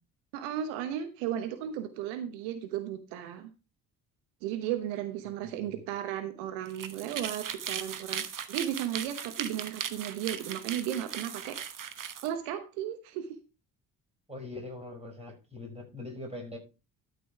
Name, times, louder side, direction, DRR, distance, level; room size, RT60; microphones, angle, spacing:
voice 1, 0.3-3.5 4.4-11.6 12.2-13.4, right 10 dB, 75° right, 10 dB, 1.1 m, -35 dB
sound 1, 6.7-12.3, right 8 dB, 40° right, 1.2 m, -38 dB
voice 2, 14.3-16.6, left 2 dB, 10° right, 0 dB, 5.5 m, -42 dB
12.5 x 5.4 x 4.6 m, 0.31 s
hypercardioid pair, 45°, 49 cm